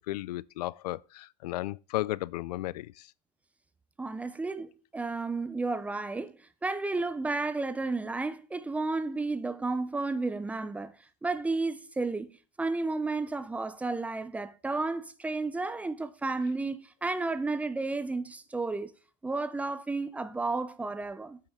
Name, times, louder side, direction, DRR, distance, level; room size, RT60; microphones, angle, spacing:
voice 1, 0.0-3.1, left 16 dB, 80° left, 0.4 m, -34 dB
voice 2, 4.0-11.0 11.2-18.9 19.2-21.4, right 3 dB, 5° right, 0.5 m, -32 dB
8.5 x 8.4 x 3.6 m
supercardioid pair, 140°, 20 cm